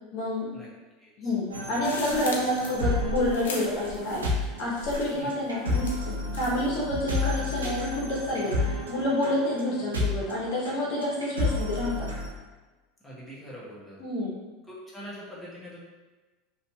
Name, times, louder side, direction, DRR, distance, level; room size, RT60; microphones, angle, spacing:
voice 1, 0.1-0.5 1.2-4.2 4.6-8.5 8.9-12.1 14.0-14.3, left 1 dB, 60° left, -5 dB, 0.8 m, -28 dB
voice 2, 1.0-1.3 5.1-5.3 13.0-14.0 14.7-15.8, equal, 10° left, -7 dB, 1.0 m, -43 dB
sound 1, 1.5-12.3, left 2 dB, 90° right, 0.5 m, -31 dB
sound 2, 1.8-4.4 4.7-5.3 5.8-6.7, equal, 80° left, 0.4 m, -37 dB
2.7 x 2.7 x 2.2 m, 1.2 s
hypercardioid pair, 85°, 0 cm